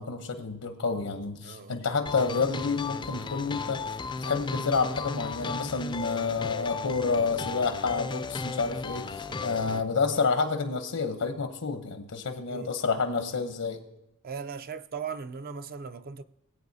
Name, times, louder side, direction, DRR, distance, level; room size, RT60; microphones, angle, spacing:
voice 1, 0.0-3.8 4.2-13.8, left 4 dB, 85° left, 0.8 m, -29 dB
voice 2, 1.4-1.8 9.3-9.6 12.5-12.7 14.2-16.2, right 6 dB, 45° right, 0.5 m, -38 dB
sound 1, 2.1-9.8, left 4 dB, 20° left, 0.4 m, -35 dB
19.0 x 8.6 x 2.7 m
head